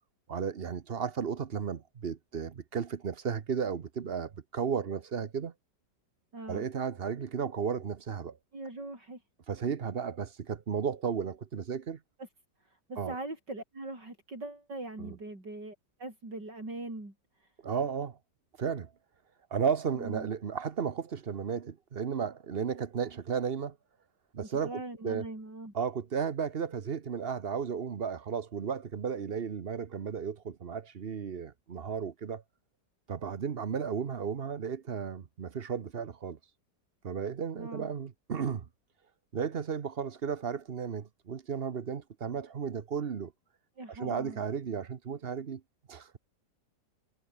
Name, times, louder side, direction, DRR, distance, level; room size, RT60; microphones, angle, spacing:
voice 1, 0.3-5.5 6.5-8.4 9.5-12.0 13.0-13.2 15.0-15.2 17.6-18.2 18.6-18.9 19.5-23.8 24.3-25.2 25.7-32.4 33.1-36.4 37.0-38.7 39.3-43.3 43.9-45.6 45.9-46.1, right 6 dB, 40° right, 0.9 m, -34 dB
voice 2, 6.3-6.6 8.5-9.2 12.6-17.1 17.4-17.5 19.9-20.3 24.6-25.7 37.5-37.9 43.8-44.4, right 2 dB, 75° right, 8.6 m, -41 dB
omnidirectional pair, 1.9 m